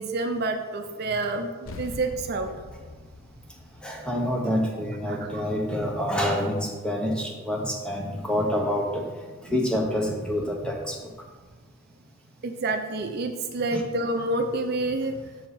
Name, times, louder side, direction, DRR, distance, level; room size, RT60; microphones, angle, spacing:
voice 1, 0.0-2.5 5.1-5.2 5.5-5.6 12.4-15.1, right 2 dB, 50° right, 5 dB, 0.5 m, -28 dB
sound 1, 1.7-6.4, left 3 dB, 75° left, 0.6 m, -44 dB
voice 2, 3.8-9.1 9.4-11.1 13.7-13.8, equal, 5° left, 0 dB, 0.9 m, -27 dB
6.3 x 4.6 x 5.5 m, 1.4 s
head